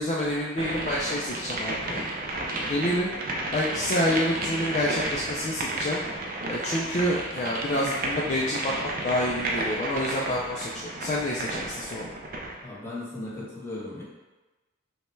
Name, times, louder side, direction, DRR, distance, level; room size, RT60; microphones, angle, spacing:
voice 1, 0.0-2.0 2.7-3.1 3.5-6.0 6.5-12.1, left 1 dB, 35° left, -3 dB, 0.4 m, -28 dB
sound 1, 0.6-12.6, right 1 dB, 45° right, 0.5 m, -32 dB
voice 2, 12.6-14.0, left 2 dB, 10° left, -7 dB, 1.0 m, -37 dB
5.5 x 2.2 x 3.1 m, 1.1 s
head